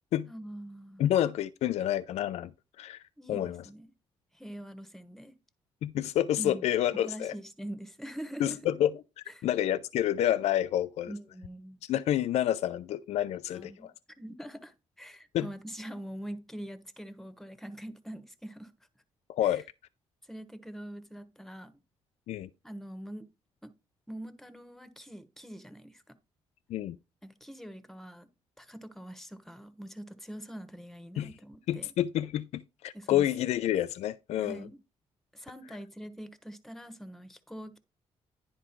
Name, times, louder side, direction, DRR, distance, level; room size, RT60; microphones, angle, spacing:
voice 1, 0.3-1.0 3.2-3.9 4.3-5.3 6.4-6.6 6.9-8.6 9.4-9.5 11.1-11.8 13.5-13.9 14.2-18.7 19.4-19.6 20.3-21.8 22.6-23.3 23.6-23.7 24.1-26.0 27.2-28.3 28.6-31.9 32.9-33.2 34.4-34.8 35.3-37.8, right 1 dB, 5° left, 1.2 m, -44 dB
voice 2, 1.0-2.5 2.8-3.0 3.3-3.6 5.8-7.3 8.4-11.1 11.8-13.9 15.3-15.5 19.3-19.6 22.3-22.5 26.7-27.0 31.2-31.3 31.7-34.6, left 12 dB, 75° left, 0.4 m, -29 dB
10.0 x 4.8 x 4.5 m
cardioid pair, 80°, 11 cm